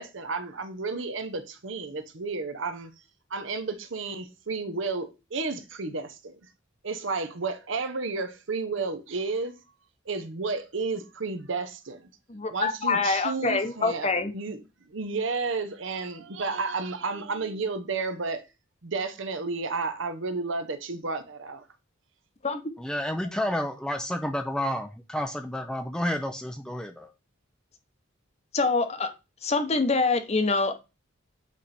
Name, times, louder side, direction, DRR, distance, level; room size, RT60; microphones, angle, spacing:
voice 1, 0.0-2.9 3.3-6.4 6.8-9.5 10.1-12.1 12.5-18.4 18.8-21.6, right 4 dB, 65° right, 0.8 m, -32 dB
voice 2, 12.3-14.3 22.4-22.6 28.5-29.1 29.4-30.8, left 3 dB, 30° left, 0.8 m, -25 dB
voice 3, 22.8-27.1, left 1 dB, 5° left, 0.4 m, -30 dB
8.2 x 3.3 x 4.1 m
head